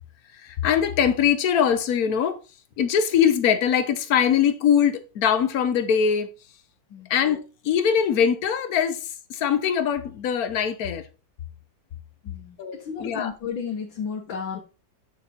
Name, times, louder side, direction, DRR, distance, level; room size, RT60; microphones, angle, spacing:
voice 1, 0.4-2.4 2.8-6.3 7.1-11.0 12.6-13.3, left 8 dB, 60° left, 1.1 m, -22 dB
voice 2, 12.2-14.6, left 6 dB, 85° left, 2.0 m, -33 dB
6.5 x 6.2 x 4.2 m
omnidirectional pair, 2.1 m